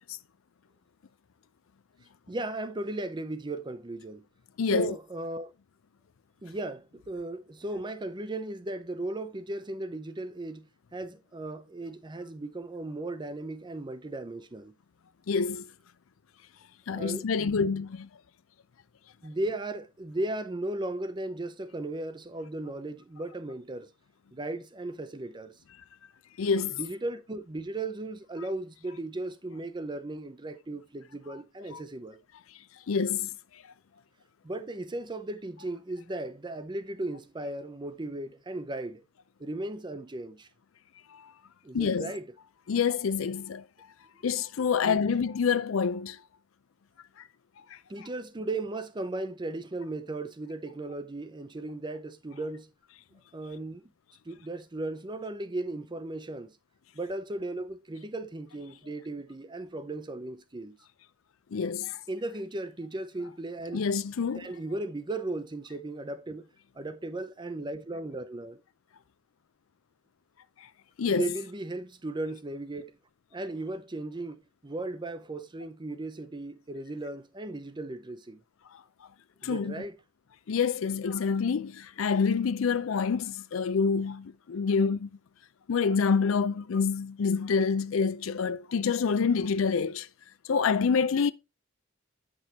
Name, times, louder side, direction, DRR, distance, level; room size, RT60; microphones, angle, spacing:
voice 1, 2.3-4.2 4.7-5.5 6.4-14.7 16.9-17.7 19.2-23.9 24.3-25.5 26.8-32.2 34.4-39.0 39.4-40.5 41.6-42.3 44.8-45.0 47.9-52.7 53.3-53.9 54.3-56.5 56.9-60.8 62.1-63.9 64.3-66.5 66.7-68.6 71.0-73.0 73.3-78.4 79.4-80.0, right 2 dB, 25° right, 0.6 m, -36 dB
voice 2, 4.6-4.9 15.3-15.7 16.9-18.1 26.4-26.8 31.7-31.8 32.9-33.3 41.1-41.3 41.7-42.1 42.7-43.6 44.2-46.2 61.5-62.0 63.7-64.5 71.0-71.3 79.4-79.7 80.5-85.1 85.7-90.1 90.5-91.3, left 5 dB, 80° left, 0.5 m, -27 dB
8.0 x 6.1 x 2.9 m
head